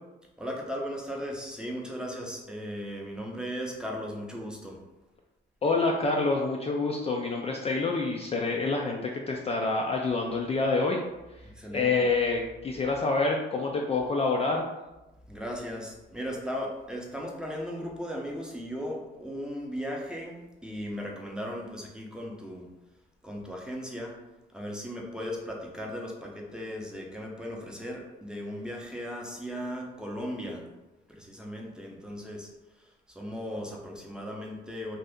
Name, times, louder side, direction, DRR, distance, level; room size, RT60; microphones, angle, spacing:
voice 1, 0.4-4.8 11.4-11.9 15.3-22.7 23.2-24.2 24.5-30.7 31.1-32.5 32.8-35.0, equal, 5° right, -1 dB, 0.6 m, -37 dB
voice 2, 5.6-11.0 11.7-14.6, left 3 dB, 30° left, 0 dB, 0.4 m, -27 dB
2.7 x 2.4 x 3.4 m, 1.0 s
cardioid pair, 90°, 20 cm